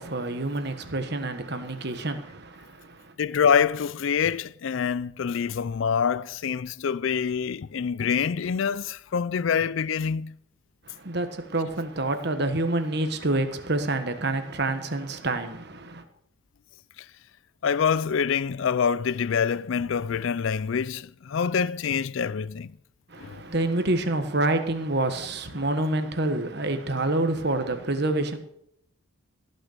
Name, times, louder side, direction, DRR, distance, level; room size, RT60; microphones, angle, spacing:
voice 1, 0.0-3.1 10.8-16.0 23.1-28.4, right 2 dB, 50° right, 1.4 m, -27 dB
voice 2, 3.2-10.3 17.6-22.7 23.2-23.4, left 6 dB, 65° left, 0.4 m, -26 dB
17.5 x 6.6 x 6.6 m
head